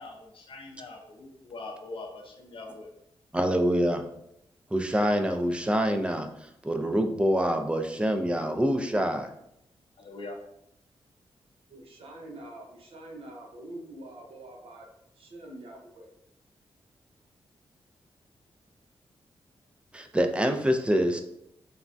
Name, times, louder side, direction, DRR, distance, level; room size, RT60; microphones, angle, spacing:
voice 1, 0.0-2.9 10.0-10.4, left 2 dB, 60° left, 2 dB, 0.6 m, -42 dB
voice 2, 3.3-4.0 4.7-9.3 19.9-21.2, equal, 10° right, 6 dB, 0.3 m, -26 dB
voice 3, 11.7-14.9 15.2-16.1, right 1 dB, 70° right, 1 dB, 0.7 m, -45 dB
3.3 x 2.1 x 2.5 m, 0.77 s
cardioid pair, 85°, 10 cm